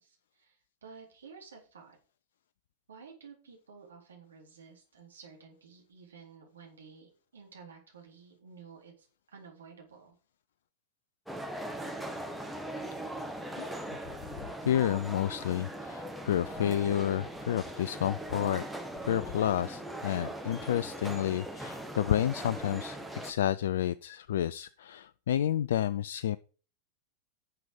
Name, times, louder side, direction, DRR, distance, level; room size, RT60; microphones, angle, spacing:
voice 1, 0.0-2.0 2.9-10.2, right 5 dB, 70° right, 1 dB, 3.8 m, -53 dB
sound 1, 11.3-23.3, right 1 dB, ahead, 1.6 m, -40 dB
voice 2, 13.6-14.0 14.4-18.6 19.0-26.4, left 11 dB, 60° left, 16 dB, 0.4 m, -30 dB
11.0 x 6.9 x 5.0 m, 0.37 s
figure-of-eight pair, 90°, 0 cm